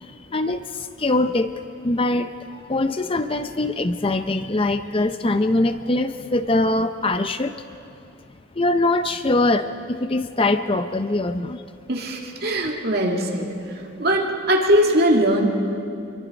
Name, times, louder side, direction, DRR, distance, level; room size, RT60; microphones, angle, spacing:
voice 1, 1.0-1.5 1.8-2.3 2.7-7.5 8.6-9.6 10.0-11.6, left 2 dB, 25° left, 9 dB, 0.5 m, -22 dB
voice 2, 11.9-13.7 14.0-15.5, equal, 50° right, 0 dB, 2.7 m, -20 dB
26.5 x 23.0 x 5.2 m, 2.5 s
head